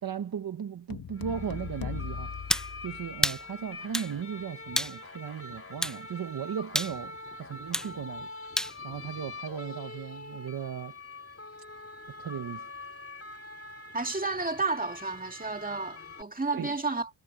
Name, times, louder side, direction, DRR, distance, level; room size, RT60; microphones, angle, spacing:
voice 1, 0.0-2.4 2.8-8.3 8.8-11.0 12.1-12.7 16.5-16.7, right 8 dB, 50° right, 1.2 m, -36 dB
sound 1, 0.9-3.4, left 7 dB, 50° left, 1.5 m, -39 dB
sound 2, 1.1-16.2, left 2 dB, 30° left, 3.7 m, -44 dB
sound 3, 2.5-2.7 3.2-3.4 3.9-4.1 4.8-5.0 5.8-6.0 6.8-7.0 7.7-7.9 8.6-8.8, equal, ahead, 0.4 m, -28 dB
voice 2, 13.9-17.1, right 3 dB, 20° right, 2.5 m, -31 dB
wide cardioid pair, 135°, 46 cm